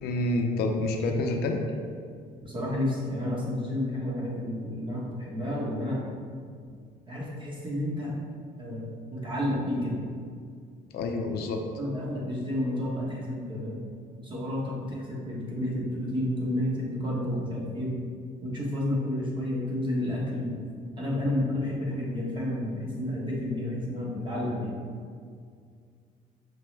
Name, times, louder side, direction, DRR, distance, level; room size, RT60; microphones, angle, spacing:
voice 1, 0.0-1.6 10.9-11.6, left 2 dB, 70° left, 3 dB, 0.4 m, -28 dB
voice 2, 2.4-6.0 7.1-8.1 8.6-8.8 9.1-10.0 11.8-13.8 14.2-18.0 18.4-20.5 21.0-24.7, left 1 dB, 30° right, -4 dB, 1.0 m, -30 dB
5.3 x 2.1 x 3.2 m, 2.1 s
cardioid pair, 110°, 17 cm